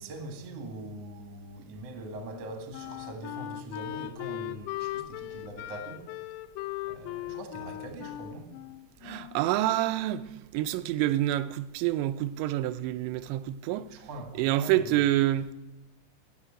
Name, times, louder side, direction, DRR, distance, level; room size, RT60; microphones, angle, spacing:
voice 1, 0.0-6.1 6.8-8.5 13.9-14.9, right 2 dB, 55° right, 1.9 m, -42 dB
Wind instrument woodwind instrument, 2.3-9.6, left 16 dB, 85° left, 2.8 m, -39 dB
voice 2, 9.0-14.1 14.4-15.5, right 14 dB, 90° right, 2.8 m, -28 dB
12.0 x 6.9 x 10.0 m
omnidirectional pair, 5.0 m